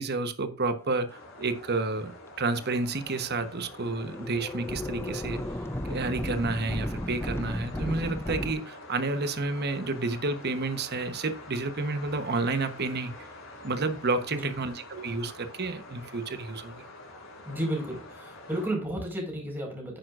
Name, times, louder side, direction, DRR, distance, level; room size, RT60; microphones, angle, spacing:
voice 1, 0.0-5.4 5.8-13.3 13.6-16.8, right 3 dB, 50° right, 1.0 m, -30 dB
sound 1, 1.1-18.7, left 2 dB, 70° left, 4.9 m, -47 dB
sound 2, 1.4-1.5 2.3-2.4 2.5-3.1 3.7-8.5, left 1 dB, 10° left, 0.5 m, -35 dB
voice 2, 17.4-20.0, right 1 dB, 10° right, 4.6 m, -32 dB
10.5 x 9.4 x 2.5 m
head